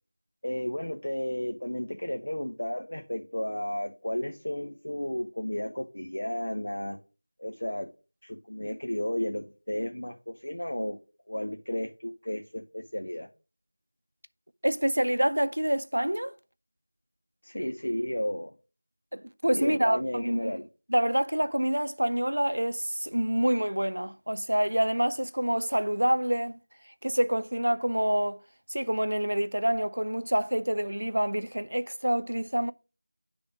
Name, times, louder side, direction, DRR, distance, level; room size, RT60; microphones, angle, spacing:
voice 1, 0.4-7.0 7.4-7.9 8.2-11.0 11.3-13.3 17.4-18.5 19.5-20.7, left 1 dB, 65° left, 0.9 m, -33 dB
voice 2, 14.6-16.3 19.1-20.6 20.9-26.6 27.0-28.4 28.7-32.7, right 1 dB, 85° right, 0.6 m, -27 dB
10.0 x 3.5 x 5.0 m
figure-of-eight pair, 180°, 0 cm